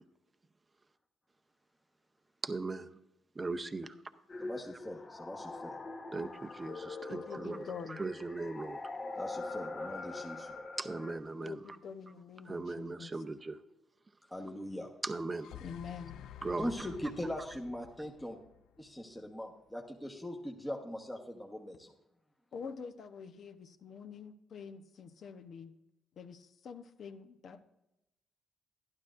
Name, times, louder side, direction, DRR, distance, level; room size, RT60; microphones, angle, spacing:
voice 1, 2.4-3.0 3.3-4.0 6.1-8.8 10.8-11.8 12.4-13.6 15.0-15.6 16.4-16.9 17.4-17.5, right 3 dB, 25° right, 8 dB, 0.6 m, -39 dB
sound 1, 4.3-11.2, left 3 dB, 35° left, 1.0 m, -43 dB
voice 2, 4.4-5.8 9.2-10.6 14.3-14.9 16.6-18.4 18.8-21.9, equal, 10° left, 0 dB, 1.1 m, -41 dB
voice 3, 7.1-8.0 11.4-13.1 15.6-16.2 22.5-25.8 26.2-27.6, left 6 dB, 60° left, 9 dB, 0.8 m, -46 dB
sound 2, 15.4-19.3, left 11 dB, 80° left, 0.4 m, -51 dB
12.0 x 11.5 x 2.5 m, 0.89 s
cardioid pair, 90°, 0 cm